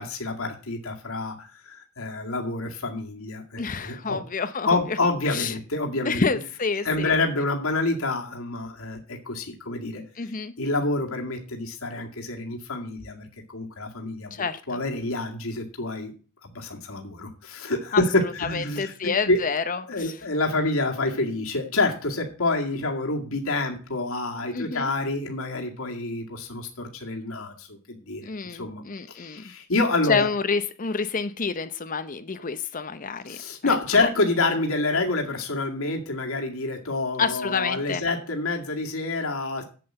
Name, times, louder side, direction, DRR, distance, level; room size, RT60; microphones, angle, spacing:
voice 1, 0.0-4.2 4.6-6.2 6.8-10.3 10.6-16.1 16.4-19.4 19.9-28.8 29.1-30.3 33.2-39.6, left 2 dB, 80° left, 1 dB, 2.1 m, -27 dB
voice 2, 3.6-5.0 5.2-5.5 6.0-7.1 10.2-10.5 14.3-14.8 17.9-20.1 24.5-24.9 28.2-29.4 30.1-34.1 37.2-38.0, left 5 dB, 40° left, 11 dB, 0.7 m, -28 dB
7.9 x 7.7 x 7.7 m, 0.38 s
head